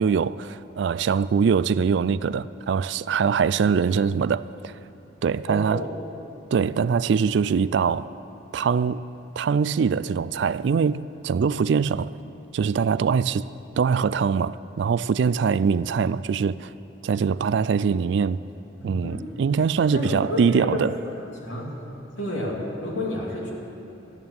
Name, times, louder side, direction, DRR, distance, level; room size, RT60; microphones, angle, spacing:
voice 1, 0.0-4.7 5.2-5.8 6.5-8.1 8.5-9.0 9.4-12.1 12.5-13.4 13.8-16.7 17.0-18.4 18.8-20.9, right 6 dB, 60° right, 0.3 m, -23 dB
voice 2, 5.5-5.9 18.8-19.3 19.9-21.8 22.2-23.5, left 1 dB, 70° left, 2.9 m, -30 dB
13.0 x 9.0 x 9.3 m
head